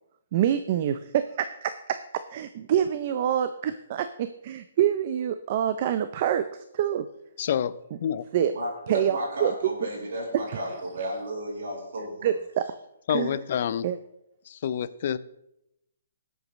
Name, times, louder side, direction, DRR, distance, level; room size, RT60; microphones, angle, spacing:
voice 1, 0.3-7.1 8.3-8.5 8.9-9.5 9.8-9.9 10.5-10.6 12.2-12.7 13.1-13.4 13.8-14.0, right 10 dB, 30° right, 10 dB, 0.4 m, -26 dB
voice 2, 7.4-8.2 13.1-13.9 14.5-15.2, left 9 dB, 40° left, 16 dB, 0.5 m, -28 dB
voice 3, 8.5-12.4, equal, 65° right, -2 dB, 4.5 m, -33 dB
20.0 x 8.0 x 3.1 m, 0.83 s
hypercardioid pair, 175°, 0 cm